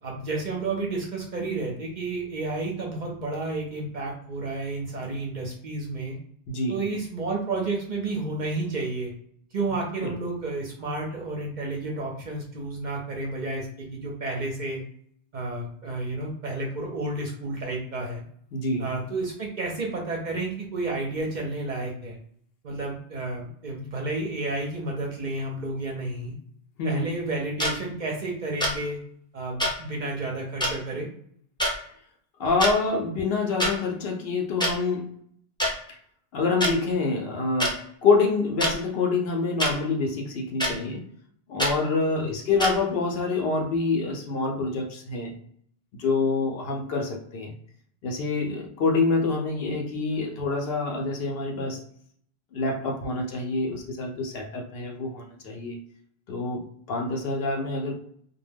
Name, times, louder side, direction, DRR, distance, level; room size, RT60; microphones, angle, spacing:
voice 1, 0.0-6.2 6.7-9.1 9.5-14.8 15.3-18.2 18.8-22.2 22.6-26.3 26.8-29.0 29.3-31.1 42.1-42.3, right 2 dB, 50° right, -1 dB, 0.6 m, -31 dB
voice 2, 18.5-18.9 26.8-27.1 32.4-35.1 36.3-41.0 41.5-45.3 45.9-47.5 48.0-51.8 52.5-55.8 56.3-58.0, left 3 dB, 65° left, 1 dB, 0.7 m, -26 dB
sound 1, 27.6-27.7 28.6-28.8 29.6-29.7 30.6-30.7 31.6-31.7 32.5-32.7 33.6-33.7 34.6-34.7 35.6-35.7 36.6-36.7 37.6-37.7 38.6-38.7 39.6-39.7 40.6-40.7 41.6-41.7 42.6-42.7, equal, 5° left, 0.4 m, -24 dB
2.2 x 2.1 x 3.3 m, 0.65 s
omnidirectional pair, 1.1 m